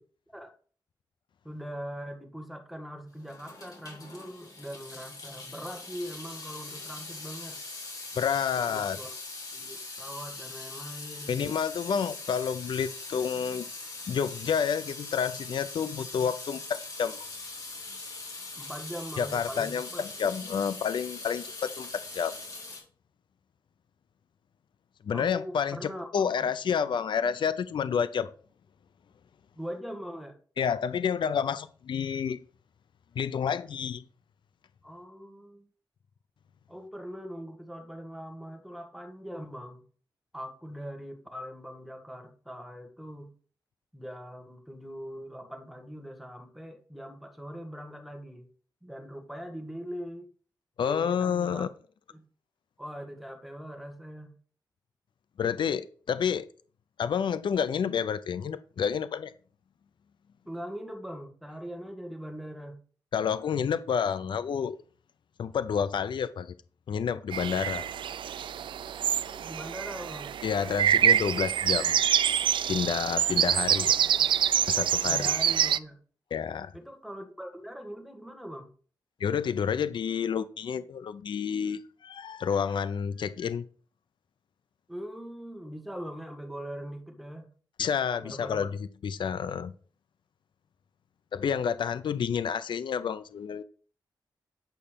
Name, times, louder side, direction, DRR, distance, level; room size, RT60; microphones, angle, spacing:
voice 1, 1.4-7.6 8.6-9.1 9.5-11.5 18.6-20.1 25.1-26.5 29.6-30.4 34.8-35.7 36.7-39.8 40.3-43.3 43.9-48.5 48.8-50.3 50.8-51.7 52.1-52.2 52.8-54.4 60.5-62.8 69.1-70.3 73.5-74.3 75.0-76.0 76.7-78.7 84.9-87.5 88.2-88.7, equal, ahead, 4 dB, 2.0 m, -41 dB
Water tap faucet / Sink (filling or washing) / Drip, 3.2-22.8, left 3 dB, 50° left, 4.1 m, -42 dB
voice 2, 8.2-9.0 11.3-13.6 14.1-17.2 19.2-21.9 22.1-22.3 25.1-28.3 30.6-32.4 33.2-34.0 50.8-51.7 55.4-56.5 57.0-59.3 63.1-64.8 65.4-66.5 66.9-67.9 70.4-72.0 72.7-73.9 74.7-75.2 76.3-76.7 79.2-83.6 87.8-88.8 89.0-89.7 91.3-93.6, left 7 dB, 75° left, 14 dB, 0.5 m, -29 dB
sound 1, 67.3-75.8, right 9 dB, 85° right, 0.3 m, -26 dB
9.1 x 5.5 x 5.1 m, 0.43 s
cardioid pair, 85°, 8 cm